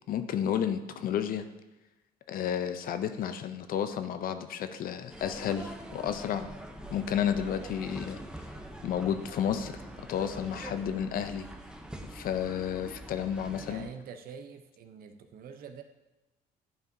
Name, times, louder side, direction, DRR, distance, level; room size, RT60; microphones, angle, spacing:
voice 1, 0.1-1.4 2.3-6.5 6.9-8.5 8.8-9.7 10.0-11.5 12.1-13.8, left 9 dB, 60° left, 9 dB, 0.5 m, -31 dB
sound 1, 5.1-13.9, right 1 dB, 5° right, 0.6 m, -44 dB
voice 2, 13.6-15.8, right 7 dB, 60° right, 7 dB, 0.7 m, -45 dB
11.0 x 4.4 x 2.7 m, 1.1 s
cardioid pair, 110°, 17 cm